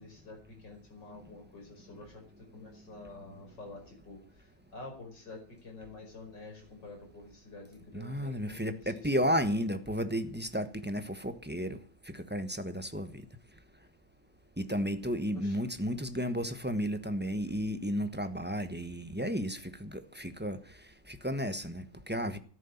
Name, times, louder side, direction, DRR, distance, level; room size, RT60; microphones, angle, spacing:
voice 1, 0.0-9.3 15.3-15.6, left 3 dB, 80° left, 3 dB, 5.8 m, -49 dB
voice 2, 7.9-11.8 12.1-13.2 14.6-20.6 21.1-22.4, equal, 5° right, 9 dB, 1.0 m, -33 dB
14.0 x 11.0 x 7.2 m, 0.42 s
omnidirectional pair, 1.9 m